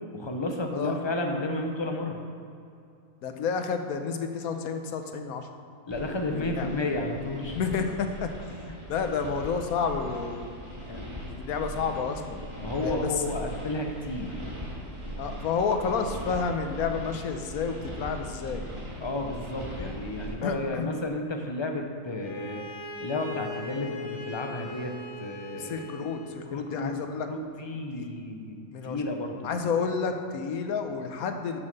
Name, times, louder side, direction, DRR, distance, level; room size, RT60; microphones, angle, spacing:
voice 1, 0.1-2.2 5.9-7.6 8.7-8.8 12.6-14.4 19.0-22.6 23.0-24.9 25.2-25.8 26.5-26.9 27.2-28.6 28.8-29.5, left 2 dB, 25° left, 3 dB, 0.6 m, -32 dB
voice 2, 3.2-5.5 6.2-6.7 7.5-8.3 8.9-12.4 12.8-13.3 15.2-18.6 20.4-20.9 25.6-27.3 28.7-29.0 29.4-31.6, left 5 dB, 85° left, 6 dB, 1.2 m, -30 dB
sound 1, 5.9-20.3, equal, 20° right, 1.8 m, -40 dB
Bowed string instrument, 22.2-26.4, left 2 dB, 60° left, 1.3 m, -40 dB
7.3 x 6.3 x 6.6 m, 2.5 s
omnidirectional pair, 1.5 m